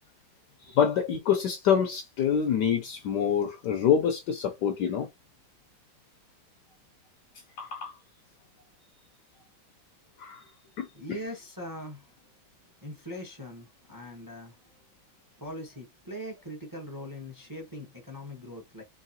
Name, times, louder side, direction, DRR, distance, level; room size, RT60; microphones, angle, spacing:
voice 1, 0.7-5.1 7.6-7.9 10.2-10.4 10.8-11.2, left 8 dB, 70° left, 1.1 m, -26 dB
voice 2, 10.9-12.0 12.8-14.5 15.4-18.8, equal, 15° right, 0.8 m, -41 dB
4.7 x 2.7 x 2.8 m
omnidirectional pair, 2.2 m